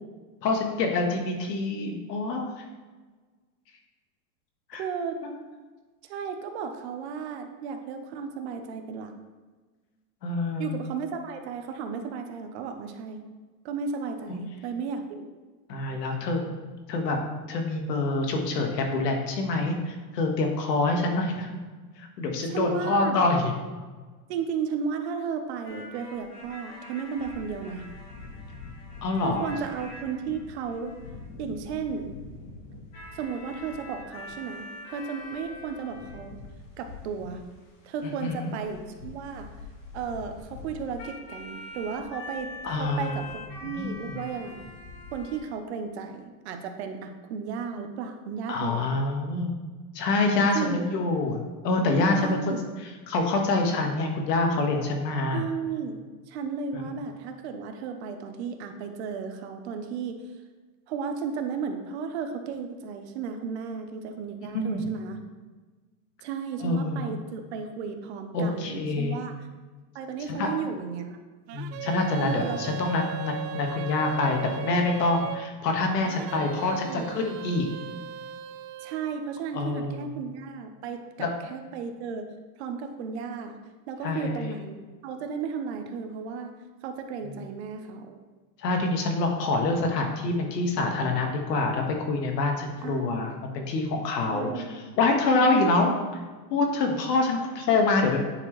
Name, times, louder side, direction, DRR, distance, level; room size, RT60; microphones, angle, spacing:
voice 1, 0.4-2.6 4.7-4.8 5.2-5.4 10.2-10.8 14.3-14.4 15.7-16.4 16.9-17.2 17.5-21.5 22.0-23.5 29.0-29.5 38.0-38.5 42.6-43.2 43.6-44.2 48.5-49.5 49.9-52.6 53.1-55.4 64.5-64.9 66.6-67.0 68.3-69.2 70.4-70.6 71.5-77.7 79.5-80.1 81.2-81.3 84.0-84.4 87.2-87.4 88.6-95.9 96.5-98.2, left 3 dB, 80° left, 2 dB, 1.6 m, -26 dB
voice 2, 4.8-5.2 6.1-9.1 10.6-13.2 13.6-15.3 22.4-23.2 24.3-27.9 29.2-30.9 31.4-32.1 33.1-36.4 36.8-37.4 37.8-39.5 39.9-44.6 45.1-48.9 50.5-50.8 52.1-52.6 55.3-56.0 56.3-60.2 60.9-65.2 66.2-69.3 69.9-71.2 72.2-72.6 76.7-77.1 78.8-82.3 82.6-83.6 83.9-84.8 85.0-86.5 86.8-88.2 92.8-93.3 94.3-94.8 95.5-96.0, right 6 dB, 45° right, 6 dB, 0.7 m, -34 dB
sound 1, 25.6-45.4, left 2 dB, 65° left, 2.1 m, -44 dB
sound 2, 71.5-75.5 76.0-79.1, right 9 dB, 80° right, 0.6 m, -38 dB
9.6 x 4.5 x 3.1 m, 1.3 s
supercardioid pair, 160°, 48 cm